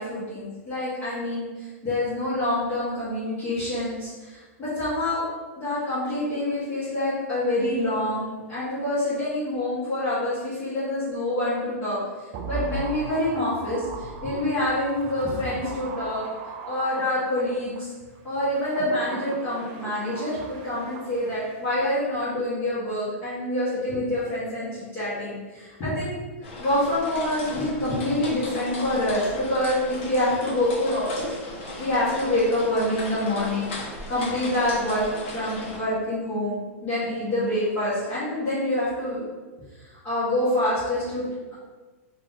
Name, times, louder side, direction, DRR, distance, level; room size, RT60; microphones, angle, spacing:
voice 1, 0.0-5.2 5.6-12.0 12.4-16.3 16.6-17.9 18.2-26.2 26.6-29.2 29.5-31.3 31.8-33.7 34.1-35.0 35.3-39.2 40.0-41.5, left 1 dB, 25° left, -12 dB, 1.2 m, -26 dB
sound 1, 12.3-17.8 18.4-21.7 21.9-22.0, right 4 dB, 30° right, 0.3 m, -38 dB
sound 2, 26.4-35.8, left 1 dB, 55° left, 1.3 m, -37 dB
2.9 x 2.8 x 3.5 m, 1.2 s
supercardioid pair, 165°, 8 cm